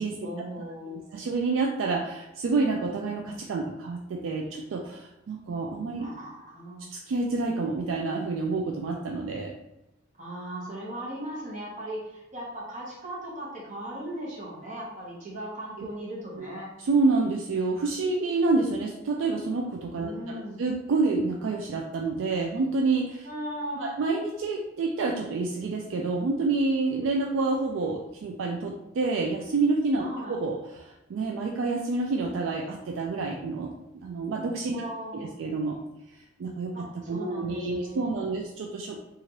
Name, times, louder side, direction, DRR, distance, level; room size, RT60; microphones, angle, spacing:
voice 1, 0.2-1.3 6.0-6.9 10.2-16.7 20.0-20.6 23.2-24.0 30.0-30.4 34.7-35.4 36.7-38.4, right 1 dB, 40° right, -4 dB, 1.0 m, -38 dB
voice 2, 1.1-6.1 6.9-9.5 16.3-16.5 16.8-23.3 23.8-30.6 31.1-33.7 34.0-34.8 35.1-35.8 36.4-39.0, right 3 dB, 75° right, 1 dB, 0.3 m, -28 dB
2.9 x 2.4 x 2.9 m, 0.95 s
head